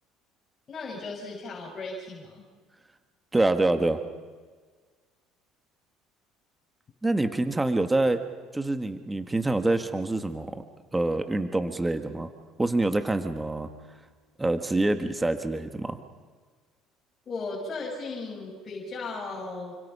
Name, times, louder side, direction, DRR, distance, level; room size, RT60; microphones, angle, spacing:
voice 1, 0.7-2.4 17.2-19.7, left 3 dB, 30° left, -3 dB, 6.7 m, -36 dB
voice 2, 3.3-4.0 7.0-8.2 8.5-10.6 10.9-12.3 12.6-13.7 14.4-16.0, right 2 dB, 10° right, 8 dB, 1.7 m, -26 dB
29.0 x 26.0 x 5.7 m, 1.5 s
supercardioid pair, 105°, 0 cm